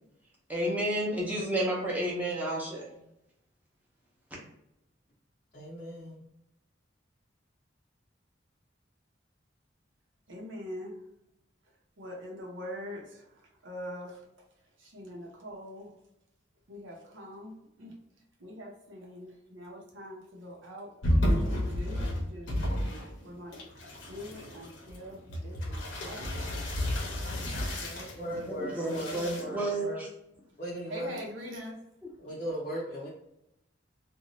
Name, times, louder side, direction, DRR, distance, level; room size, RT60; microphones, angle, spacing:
voice 1, 0.5-3.0 28.5-30.1, right 1 dB, 10° right, -5 dB, 0.7 m, -31 dB
voice 2, 5.5-6.2 28.1-30.0 30.6-31.2 32.2-33.1, right 1 dB, 40° left, -6 dB, 0.5 m, -38 dB
voice 3, 10.3-11.0 12.0-14.2 14.8-15.9 16.7-17.5 17.8-17.9 18.4-20.9 21.4-23.7 24.1-26.4 27.7-29.7 30.9-31.8 32.3-32.4, equal, 90° right, -2 dB, 0.8 m, -44 dB
sound 1, 21.0-23.2 23.5-28.2 28.7-29.4, equal, 90° left, 0.7 m, -31 dB
2.6 x 2.2 x 3.0 m, 0.84 s
head